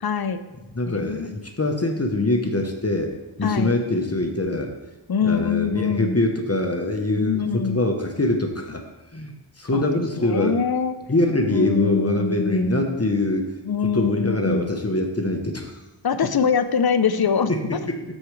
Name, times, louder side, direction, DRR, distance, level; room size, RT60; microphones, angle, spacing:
voice 1, 0.0-0.4 0.9-1.3 3.4-3.7 5.1-6.2 7.2-7.8 9.7-9.9 10.2-10.9 11.5-13.0 13.6-14.7 16.0-17.8, left 6 dB, 50° left, 11 dB, 0.6 m, -24 dB
voice 2, 0.7-3.1 3.4-4.7 5.2-8.8 9.1-10.6 11.1-13.5 13.8-15.7 17.5-18.0, left 2 dB, 30° left, 3 dB, 1.0 m, -24 dB
13.0 x 4.8 x 3.2 m, 1.1 s
wide cardioid pair, 55°, 49 cm